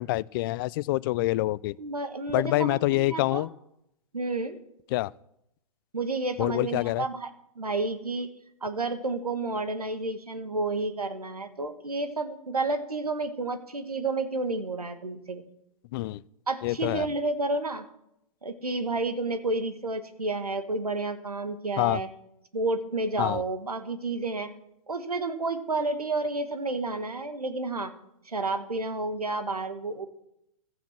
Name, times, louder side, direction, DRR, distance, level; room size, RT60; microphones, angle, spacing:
voice 1, 0.0-1.8 2.3-3.5 4.9-5.1 6.4-7.1 15.9-16.2 16.6-17.1 21.8-22.0 23.2-23.4, left 18 dB, 40° left, 23 dB, 0.4 m, -26 dB
voice 2, 1.8-3.5 4.1-4.6 5.9-7.3 7.6-8.3 8.6-15.4 16.5-17.9 18.4-22.1 22.5-24.5 24.9-27.9 28.3-30.1, right 3 dB, 90° right, 9 dB, 1.7 m, -30 dB
15.5 x 14.0 x 4.5 m, 0.81 s
figure-of-eight pair, 115°, 19 cm